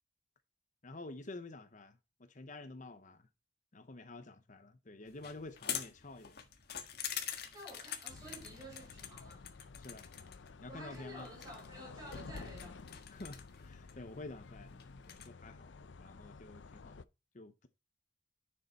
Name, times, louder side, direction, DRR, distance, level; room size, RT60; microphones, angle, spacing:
voice 1, 0.8-3.2 3.7-6.4 9.8-10.0 10.6-11.3 13.1-14.7 15.1-15.7 16.0-17.0 17.3-17.7, left 2 dB, 45° left, 0.8 m, -49 dB
sound 1, 5.1-15.3, left 9 dB, 60° left, 1.6 m, -46 dB
voice 2, 7.5-9.5 10.7-13.0, equal, 20° right, 4.7 m, -51 dB
sound 2, 8.1-17.0, left 4 dB, 80° left, 0.6 m, -52 dB
9.9 x 6.7 x 4.2 m
head